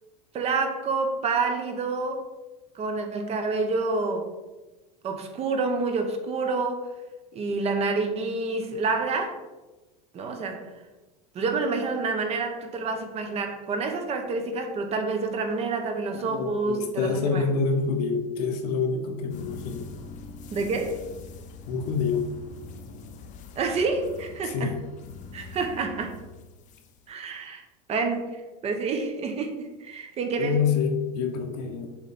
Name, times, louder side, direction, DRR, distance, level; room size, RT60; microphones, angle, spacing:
voice 1, 0.3-2.3 2.7-4.3 5.0-6.9 7.3-9.4 10.1-10.7 11.3-17.4 20.5-21.1 23.6-24.7 25.3-26.2 27.1-27.6 27.9-30.6, right 4 dB, 30° right, 5 dB, 0.9 m, -28 dB
voice 2, 16.1-19.9 21.7-22.3 24.4-24.8 30.4-31.9, left 5 dB, 75° left, 5 dB, 1.1 m, -27 dB
sound 1, 19.3-27.1, left 4 dB, 40° left, 0.6 m, -43 dB
7.1 x 3.2 x 4.1 m, 1.1 s
supercardioid pair, 135°, 20 cm